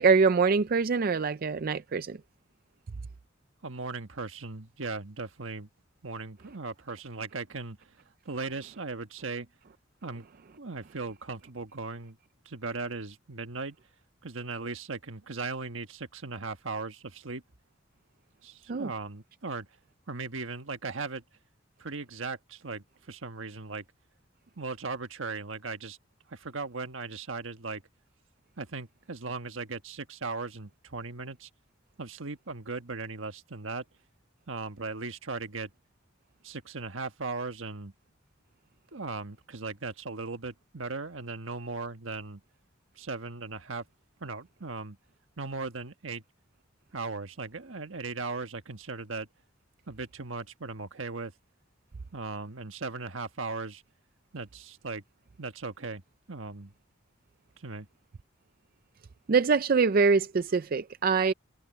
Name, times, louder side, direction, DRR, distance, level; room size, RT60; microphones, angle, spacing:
voice 1, 0.0-2.2 18.7-18.9 59.3-61.3, right 5 dB, 45° right, 0.4 m, -24 dB
voice 2, 3.6-5.7 6.0-7.9 8.2-9.5 10.0-10.2 10.6-12.2 12.4-13.8 14.2-17.4 18.4-19.7 20.1-21.2 21.8-23.8 24.6-26.0 26.3-27.8 28.6-31.5 32.0-33.8 34.5-35.7 36.4-37.9 38.9-42.4 43.0-43.8 44.2-45.0 45.4-46.2 46.9-49.3 49.9-51.3 52.1-53.8 54.3-55.0 55.4-56.0 56.3-56.7 57.6-57.9, right 3 dB, 80° right, 1.4 m, -37 dB
head